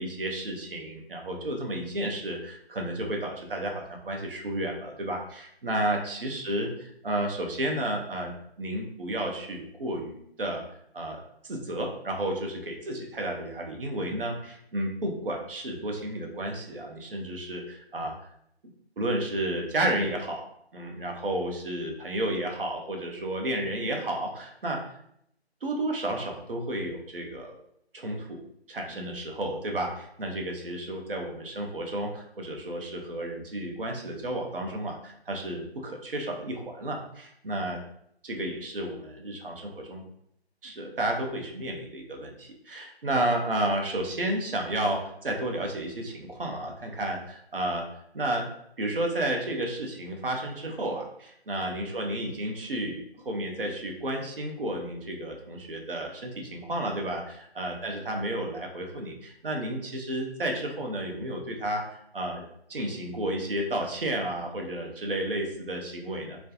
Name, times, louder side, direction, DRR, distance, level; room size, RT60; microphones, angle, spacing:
voice 1, 0.0-10.6 10.9-18.1 19.0-20.4 20.7-24.8 25.6-27.5 27.9-28.4 28.7-37.8 38.2-40.0 40.6-47.8 48.1-48.5 48.8-62.4 62.7-66.4, right 1 dB, 55° right, 2 dB, 0.5 m, -32 dB
2.4 x 2.1 x 2.7 m, 0.73 s
figure-of-eight pair, 175°, 33 cm